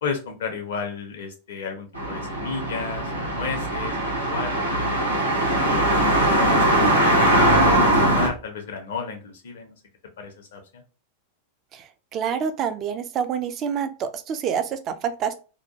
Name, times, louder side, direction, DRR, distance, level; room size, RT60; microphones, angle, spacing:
voice 1, 0.0-5.3 5.6-5.9 6.5-9.8 10.2-10.8, left 5 dB, 60° left, 3 dB, 0.5 m, -34 dB
sound 1, 1.9-8.3, right 1 dB, 90° right, 0.8 m, -20 dB
voice 2, 11.7-15.3, right 7 dB, 30° right, 10 dB, 0.3 m, -27 dB
2.7 x 2.1 x 2.7 m, 0.34 s
figure-of-eight pair, 90°, 0 cm